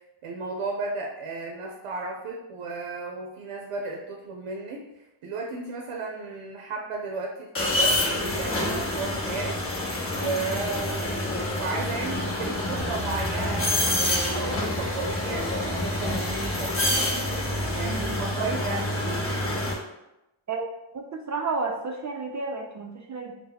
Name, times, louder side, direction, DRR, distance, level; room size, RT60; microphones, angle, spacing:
voice 1, 0.2-9.5 10.1-16.7 17.7-19.3, right 3 dB, 80° right, 0 dB, 0.6 m, -34 dB
sound 1, 7.6-19.7, left 1 dB, 25° left, 0.8 m, -27 dB
voice 2, 20.9-23.4, right 4 dB, 40° right, 2 dB, 0.4 m, -31 dB
2.7 x 2.1 x 3.8 m, 0.92 s
cardioid pair, 65°, 50 cm